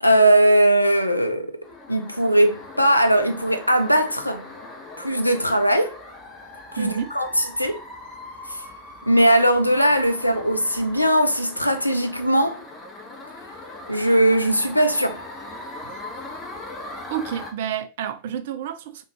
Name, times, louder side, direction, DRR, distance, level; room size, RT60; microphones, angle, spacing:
voice 1, 0.0-1.6 1.9-4.4 5.0-6.0 6.7-7.3 7.5-7.8 8.5-8.6 9.1-12.6 13.9-15.2, right 1 dB, 85° left, 0.4 m, -19 dB
sound 1, 1.6-17.5, left 2 dB, 20° left, 0.7 m, -40 dB
voice 2, 6.8-7.1 17.1-19.0, right 9 dB, 55° right, 0.3 m, -29 dB
3.5 x 2.3 x 3.0 m
figure-of-eight pair, 90°, 0 cm